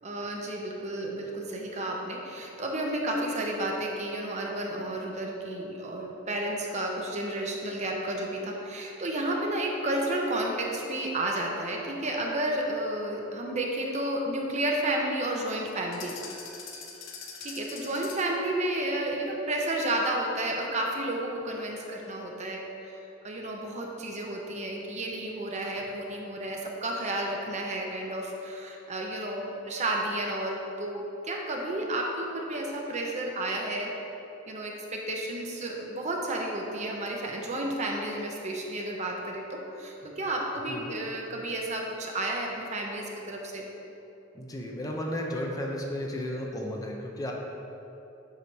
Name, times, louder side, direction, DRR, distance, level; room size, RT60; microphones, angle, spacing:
voice 1, 0.0-16.1 17.4-23.0 23.2-33.9 34.5-43.7, right 1 dB, 35° right, 0 dB, 0.7 m, -32 dB
sound 1, 15.9-18.4, left 5 dB, 70° left, 0.8 m, -43 dB
voice 2, 44.3-47.3, left 1 dB, 20° left, -1 dB, 0.6 m, -33 dB
8.3 x 3.1 x 5.3 m, 3.0 s
head